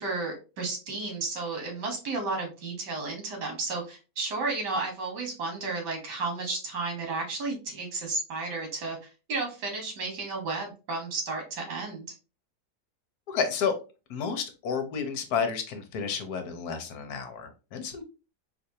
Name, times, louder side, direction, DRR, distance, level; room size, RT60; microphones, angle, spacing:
voice 1, 0.0-9.0 9.3-12.1, right 3 dB, 90° right, 3 dB, 1.9 m, -33 dB
voice 2, 13.3-13.8 14.1-18.0, left 6 dB, 70° left, 6 dB, 1.2 m, -31 dB
4.2 x 2.6 x 2.7 m, 0.31 s
omnidirectional pair, 1.8 m